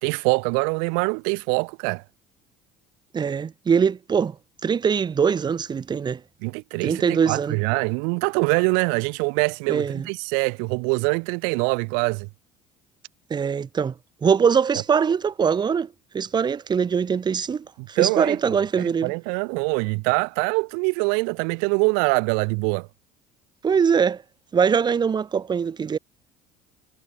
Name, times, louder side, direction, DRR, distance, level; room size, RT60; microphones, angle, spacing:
voice 1, 0.0-2.0 6.4-12.3 18.0-22.9, right 40 dB or more, 80° right, 0.9 m, -24 dB
voice 2, 3.1-4.4 4.6-6.2 6.8-7.6 9.7-10.1 13.3-13.9 14.2-19.1 23.6-24.2 24.5-26.0, right 6 dB, 30° right, 1.0 m, -22 dB
supercardioid pair, 85°, 15 cm